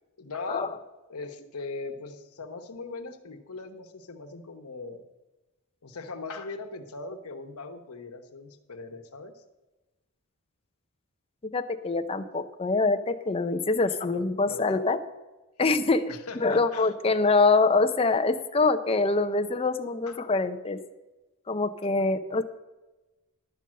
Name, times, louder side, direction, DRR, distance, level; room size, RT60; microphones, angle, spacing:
voice 1, 0.2-0.7 1.1-5.0 5.8-9.4 14.1-14.8 16.1-17.3 20.1-20.2, left 3 dB, 85° left, 5 dB, 1.1 m, -40 dB
voice 2, 11.5-15.0 15.6-20.8 21.5-22.4, left 3 dB, 25° left, 8 dB, 0.5 m, -25 dB
12.0 x 5.4 x 7.5 m, 1.1 s
head